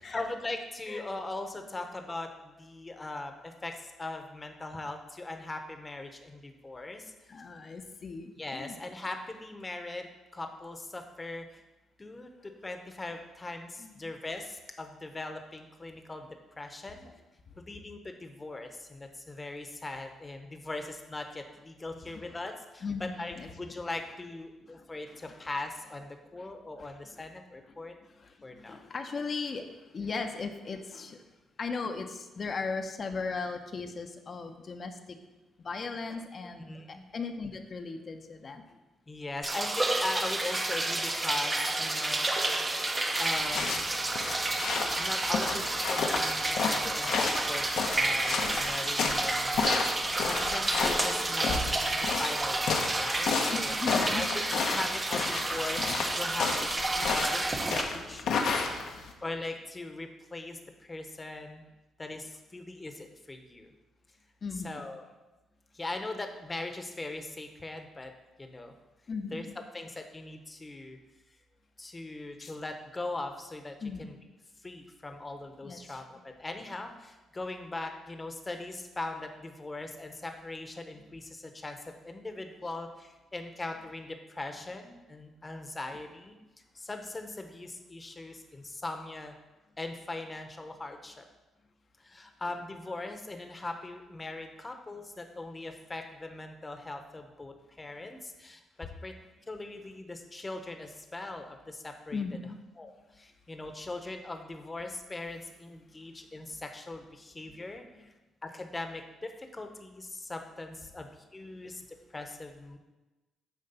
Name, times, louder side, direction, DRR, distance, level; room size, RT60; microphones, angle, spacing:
voice 1, 0.1-7.3 8.4-11.6 12.0-16.3 16.6-17.1 17.6-27.9 28.4-28.8 36.7-37.0 39.1-42.3 43.2-43.8 45.0-49.6 50.2-53.7 54.1-54.3 54.7-58.6 59.2-61.7 62.0-63.7 64.6-65.0 65.7-68.1 68.4-68.7 69.3-69.4 69.7-71.0 71.8-74.1 74.6-86.3 86.7-89.4 89.8-91.2 92.0-99.1 99.5-102.2 102.8-108.1 108.4-112.8, left 2 dB, 20° left, 5 dB, 1.0 m, -40 dB
voice 2, 7.3-8.8 13.8-14.1 17.5-17.6 22.0-22.3 22.8-23.5 24.7-25.5 26.4-26.5 26.8-27.2 27.7-31.2 31.6-35.2 35.6-38.8 53.5-54.6 58.7-58.8 64.4-64.9 69.1-69.5 72.4-72.6 73.8-74.1 75.6-76.0 102.1-102.6 107.5-107.6 108.0-108.1, left 4 dB, 45° left, 5 dB, 0.8 m, -38 dB
sound 1, 39.4-57.8, right 2 dB, 25° right, 0.8 m, -30 dB
sound 2, 43.4-59.1, left 5 dB, 75° left, 1.0 m, -32 dB
9.5 x 3.2 x 6.9 m, 1.1 s
cardioid pair, 90°, 0 cm